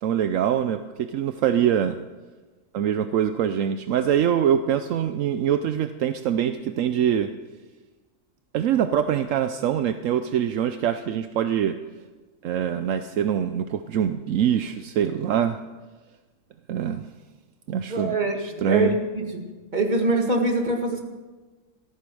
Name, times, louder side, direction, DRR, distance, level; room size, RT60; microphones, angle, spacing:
voice 1, 0.0-2.0 2.7-7.3 8.5-11.7 12.4-15.6 16.7-17.0 17.7-18.1 18.4-18.9, right 9 dB, 75° right, 9 dB, 1.0 m, -24 dB
voice 2, 17.9-19.5 19.7-21.0, right 2 dB, 35° right, 2 dB, 2.1 m, -24 dB
14.5 x 14.0 x 6.2 m, 1.3 s
omnidirectional pair, 1.4 m